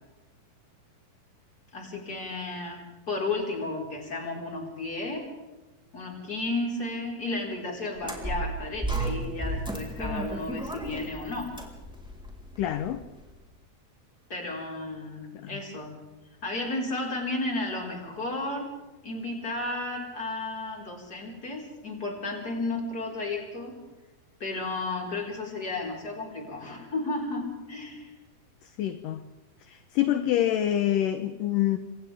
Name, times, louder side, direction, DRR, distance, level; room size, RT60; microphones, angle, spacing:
voice 1, 1.7-5.2 5.9-11.5 14.3-16.0 16.4-18.7 19.0-23.8 24.4-28.1, left 2 dB, 25° left, -1 dB, 5.3 m, -33 dB
sound 1, 8.0-13.2, right 1 dB, ahead, 3.5 m, -34 dB
voice 2, 12.6-13.0 15.3-15.6 28.6-29.2 29.6-31.8, left 12 dB, 70° left, 9 dB, 2.4 m, -26 dB
29.0 x 26.0 x 3.6 m, 1.2 s
omnidirectional pair, 4.4 m